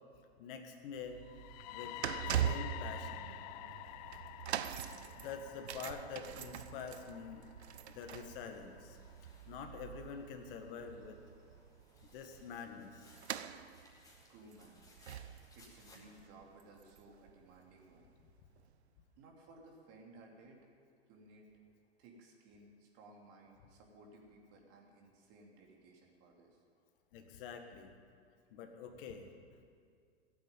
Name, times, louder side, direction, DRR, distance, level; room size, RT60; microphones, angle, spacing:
voice 1, 0.4-1.2 1.7-1.9 2.3-3.2 5.1-7.4 7.9-9.0 9.5-11.2 12.1-13.1 27.1-27.9 28.5-29.3, left 6 dB, 55° left, 5 dB, 1.8 m, -46 dB
sound 1, 0.9-17.3 17.6-17.8 18.6-18.7, right 10 dB, 75° right, 0.7 m, -43 dB
sound 2, 1.2-9.1, left 16 dB, 40° left, 0.4 m, -49 dB
sound 3, 8.4-16.2, left 1 dB, 10° left, 4.2 m, -65 dB
voice 2, 14.3-14.8 15.5-18.1 19.2-20.6 21.1-21.5 22.0-26.6, right 2 dB, 45° right, 0 dB, 3.2 m, -59 dB
15.5 x 8.8 x 9.2 m, 2.2 s
hypercardioid pair, 105°, 32 cm